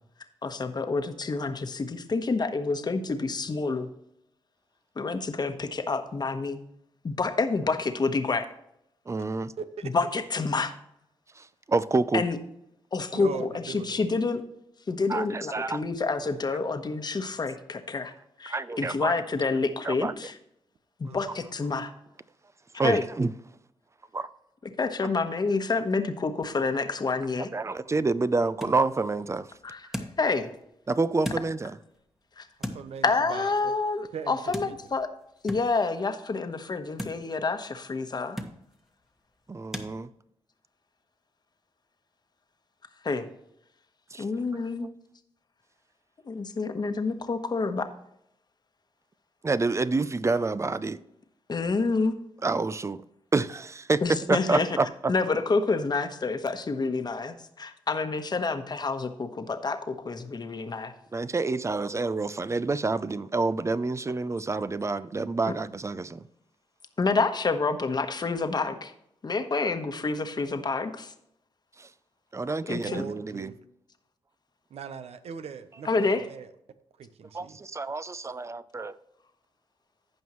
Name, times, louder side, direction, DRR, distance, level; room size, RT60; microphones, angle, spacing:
voice 1, 0.4-3.9 5.0-6.6 7.0-8.5 9.8-10.7 12.1-12.4 12.9-14.4 14.9-18.1 18.4-20.3 21.0-21.9 22.8-23.0 24.8-27.5 29.6-29.8 30.2-30.5 32.4-32.5 33.0-35.1 35.4-38.4 43.0-43.3 44.2-44.9 46.3-47.9 51.5-52.1 54.0-54.7 55.1-60.9 65.5-65.6 67.0-68.9 69.2-71.1 72.6-73.0 75.8-76.2, left 4 dB, 40° left, 1.2 m, -28 dB
voice 2, 9.1-9.5 11.4-12.2 15.1-15.8 18.5-19.1 19.8-20.1 22.8-23.3 24.1-24.3 27.5-29.5 30.9-31.8 39.5-40.1 44.1-44.2 44.5-44.9 49.4-51.0 52.4-53.0 53.3-55.1 61.1-66.3 71.8-71.9 72.3-73.5 77.3-79.0, right 3 dB, 25° right, 0.5 m, -28 dB
voice 3, 9.6-9.9 13.1-14.0 21.0-21.3 32.7-33.7 34.1-34.4 34.6-34.7 72.8-73.5 74.7-76.5 77.0-77.6, right 7 dB, 75° right, 0.9 m, -39 dB
sound 1, 27.6-39.9, equal, 5° right, 1.4 m, -43 dB
15.5 x 5.5 x 3.1 m
cardioid pair, 65°, 11 cm